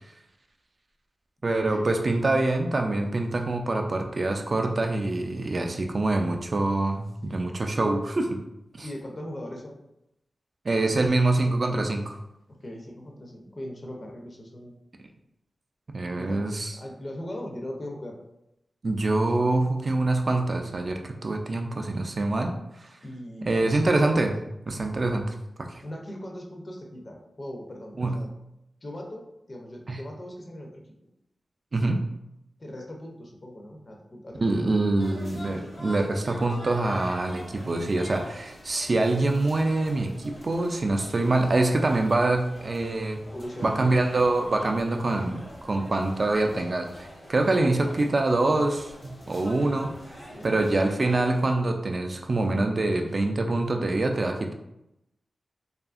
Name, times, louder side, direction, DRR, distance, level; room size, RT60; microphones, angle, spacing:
voice 1, 1.4-8.4 10.6-12.2 15.9-16.7 18.8-22.5 23.5-24.4 24.7-25.8 28.0-28.2 29.9-30.0 31.7-32.1 34.4-43.2 43.6-49.9 50.4-54.5, right 2 dB, 45° right, 3 dB, 0.3 m, -25 dB
voice 2, 8.8-9.8 12.5-14.9 16.1-16.5 16.7-18.2 23.0-23.8 25.8-28.3 28.8-30.8 32.6-34.7 43.2-43.9 50.3-50.7, left 1 dB, 40° left, 0 dB, 0.5 m, -39 dB
sound 1, 35.0-51.5, equal, 80° left, 1.0 m, -45 dB
2.7 x 2.4 x 2.4 m, 0.85 s
wide cardioid pair, 90°, 0 cm